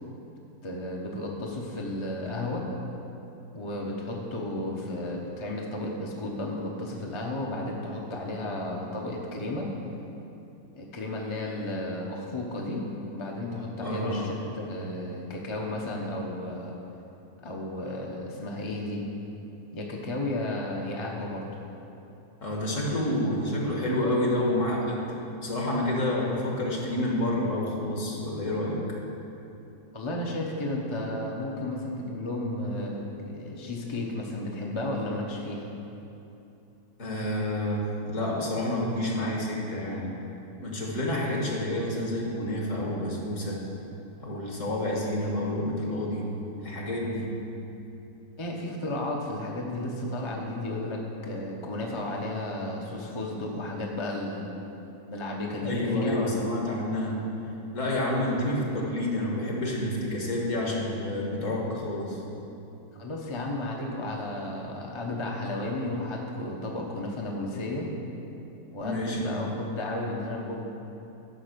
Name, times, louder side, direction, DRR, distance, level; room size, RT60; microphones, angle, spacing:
voice 1, 0.6-2.6 3.5-9.7 10.7-12.8 13.1-16.7 17.4-19.0 19.7-21.5 29.9-35.7 48.4-54.5 55.1-56.4 62.9-67.9 68.7-70.6, left 1 dB, 25° left, -1 dB, 0.7 m, -33 dB
voice 2, 13.8-14.3 22.4-25.0 25.4-28.8 37.0-40.1 40.6-43.6 44.2-46.3 46.6-47.3 55.6-57.2 57.7-62.2 68.8-69.5, left 1 dB, 55° left, -2 dB, 1.9 m, -29 dB
9.9 x 5.4 x 6.7 m, 2.9 s
omnidirectional pair, 1.6 m